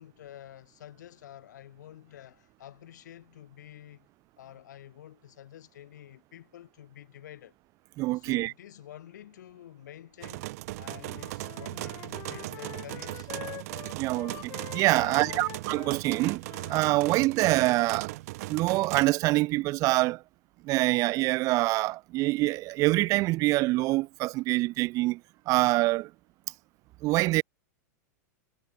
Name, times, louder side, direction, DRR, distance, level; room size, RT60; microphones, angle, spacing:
voice 1, 0.0-4.1 4.4-7.5 8.1-10.5 10.8-13.3 15.0-15.5, left 12 dB, 80° left, 6.3 m, -49 dB
voice 2, 8.0-8.5 13.9-16.4 16.7-18.1 18.5-20.2 20.6-25.2 25.5-26.1 27.0-27.4, right 20 dB, 35° right, 0.4 m, -25 dB
sound 1, 10.2-19.1, right 20 dB, 60° right, 0.7 m, -38 dB
Wind instrument woodwind instrument, 11.0-17.3, left 16 dB, 35° left, 1.9 m, -46 dB
hypercardioid pair, 130°, 9 cm